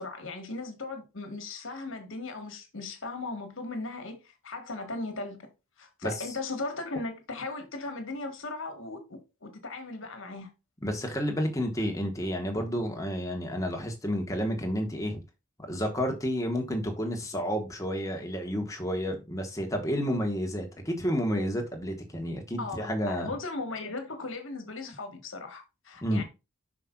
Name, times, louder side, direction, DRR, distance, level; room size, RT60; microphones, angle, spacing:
voice 1, 0.0-5.5 5.8-10.5 22.6-26.2, left 3 dB, 60° left, 1.5 m, -37 dB
voice 2, 6.0-6.4 10.8-15.2 15.7-23.3 26.0-26.2, equal, 15° left, 1.2 m, -30 dB
5.9 x 5.0 x 3.8 m
head